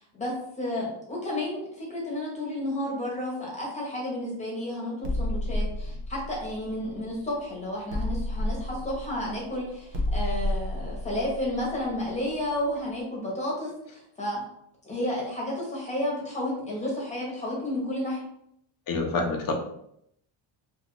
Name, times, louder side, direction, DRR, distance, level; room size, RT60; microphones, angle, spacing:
voice 1, 0.0-14.4 14.8-18.2, left 1 dB, 15° left, -3 dB, 1.0 m, -32 dB
sound 1, 5.0-7.4 7.9-12.6, left 1 dB, 55° right, 0.7 m, -31 dB
voice 2, 18.9-19.6, left 3 dB, 45° left, 3 dB, 0.6 m, -27 dB
2.7 x 2.5 x 3.0 m, 0.73 s
cardioid pair, 135°, 49 cm